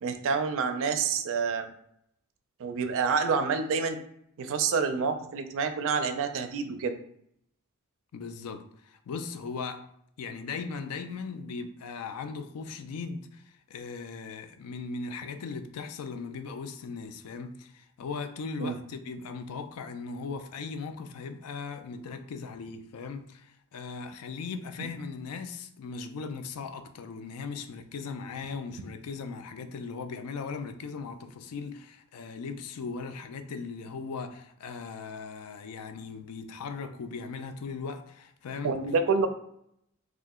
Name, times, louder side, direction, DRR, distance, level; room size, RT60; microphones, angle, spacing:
voice 1, 0.0-1.7 2.6-4.0 4.4-6.9 18.6-18.8 38.6-39.3, right 5 dB, 65° right, 0.4 m, -28 dB
voice 2, 8.1-9.8 10.2-38.8, left 4 dB, 75° left, 0.4 m, -38 dB
2.7 x 2.4 x 3.6 m
head